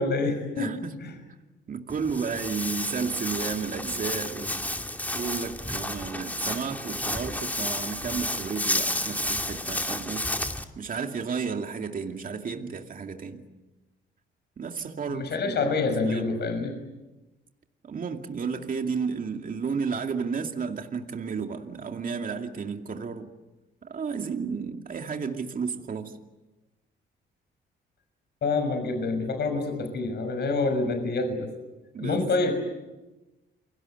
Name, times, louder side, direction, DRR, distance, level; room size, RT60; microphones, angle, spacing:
voice 1, 0.0-1.1 15.1-16.8 28.4-31.5 32.0-32.5, left 3 dB, 60° left, 6 dB, 6.0 m, -27 dB
voice 2, 0.6-1.3 1.7-4.6 5.1-10.3 10.8-13.4 14.6-16.3 17.8-23.3 23.8-26.2 31.9-32.2, right 5 dB, 45° right, 4 dB, 2.5 m, -32 dB
Walk footsteps, 1.9-10.6, left 1 dB, 10° left, 2.5 m, -31 dB
29.5 x 24.0 x 8.0 m, 1.1 s
cardioid pair, 90°, 20 cm